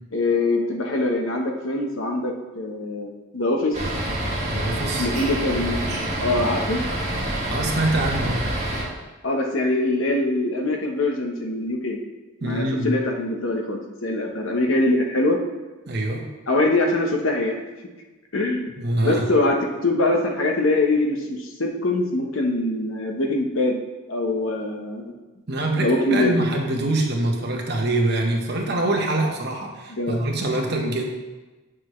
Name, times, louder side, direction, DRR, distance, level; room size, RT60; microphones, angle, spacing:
voice 1, 0.1-3.8 5.0-5.8 6.2-6.8 9.2-12.0 12.4-15.4 16.5-17.6 18.3-18.7 19.0-19.6 19.8-23.8 24.1-25.0 25.7-26.4 29.9-30.2, left 2 dB, 65° left, 2 dB, 0.9 m, -23 dB
sound 1, 3.7-8.8, right 1 dB, 30° right, 1.7 m, -27 dB
voice 2, 4.5-5.1 7.3-8.5 12.4-12.9 15.9-16.2 18.7-19.2 25.5-31.0, right 2 dB, 50° right, 1 dB, 1.1 m, -24 dB
8.0 x 6.2 x 3.1 m, 1.2 s
head